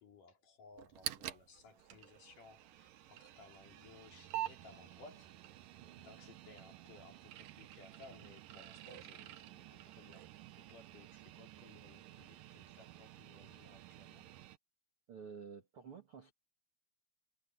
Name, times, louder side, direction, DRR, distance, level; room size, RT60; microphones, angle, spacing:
voice 1, 0.0-5.4 6.0-10.3 10.6-14.3, left 4 dB, 50° left, 4.0 m, -60 dB
sound 1, 0.8-14.6, right 14 dB, 85° right, 1.9 m, -49 dB
voice 2, 15.1-16.3, right 6 dB, 45° right, 1.9 m, -51 dB
omnidirectional pair, 5.4 m